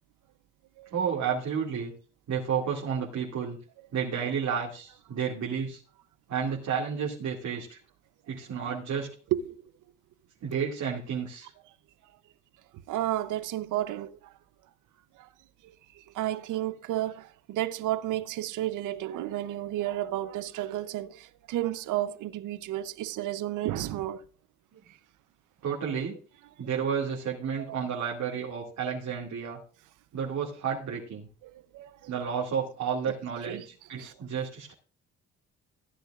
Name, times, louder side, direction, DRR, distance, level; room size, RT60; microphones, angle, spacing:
voice 1, 0.9-1.9 2.3-3.6 3.9-5.8 6.3-7.8 8.3-9.1 10.4-11.5 25.6-26.2 26.6-29.6 30.1-31.3 32.1-34.7, right 7 dB, 65° right, 2.4 m, -31 dB
voice 2, 9.3-9.7 12.9-14.3 15.1-15.3 15.6-24.2 24.9-25.0 26.6-26.7 27.6-27.7 31.4-32.1 33.4-33.7 34.0-34.3, right 13 dB, 85° right, 0.8 m, -32 dB
15.5 x 10.0 x 2.5 m
cardioid pair, 90°, 30 cm